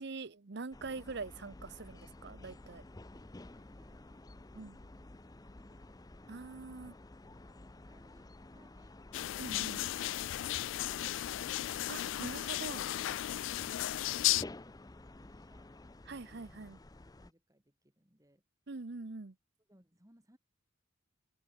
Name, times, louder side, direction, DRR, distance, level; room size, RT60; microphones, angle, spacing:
voice 1, 0.0-2.8 4.5-4.8 6.3-7.0 9.4-9.8 11.9-12.9 16.1-16.8 18.7-19.3, right 3 dB, 60° right, 0.8 m, -44 dB
sound 1, 0.7-17.3, left 2 dB, 20° left, 0.6 m, -52 dB
voice 2, 3.4-4.3 4.6-6.7 7.1-9.0 14.3-15.7 16.3-16.7 17.2-18.4 19.7-20.4, right 1 dB, 15° right, 3.7 m, -69 dB
sound 2, 9.1-14.4, left 14 dB, 70° left, 0.3 m, -35 dB
head